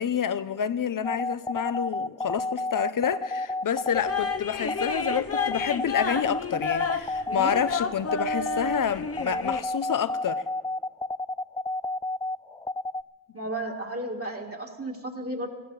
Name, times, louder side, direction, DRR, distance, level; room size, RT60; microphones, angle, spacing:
voice 1, 0.0-10.4, left 8 dB, 75° left, 0.7 m, -28 dB
sound 1, 1.0-13.0, left 2 dB, 10° left, 0.4 m, -30 dB
sound 2, 3.9-9.6, left 5 dB, 45° left, 0.8 m, -31 dB
voice 2, 13.3-15.5, right 1 dB, 45° right, 1.9 m, -33 dB
19.5 x 14.5 x 4.8 m
cardioid pair, 60°, 33 cm